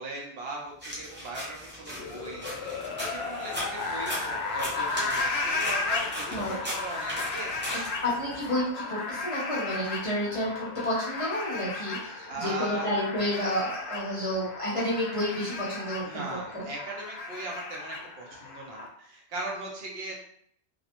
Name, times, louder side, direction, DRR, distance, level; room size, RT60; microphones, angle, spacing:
voice 1, 0.0-7.6 12.3-12.9 16.0-20.1, right 2 dB, 65° right, -1 dB, 0.8 m, -39 dB
sound 1, 0.8-8.5, equal, 15° right, 0.4 m, -38 dB
sound 2, 1.9-18.9, left 3 dB, 70° left, 0.8 m, -35 dB
voice 2, 6.3-6.6 8.0-16.2 16.5-16.6, left 1 dB, 35° left, -7 dB, 0.6 m, -30 dB
2.4 x 2.0 x 2.8 m, 0.67 s
omnidirectional pair, 1.1 m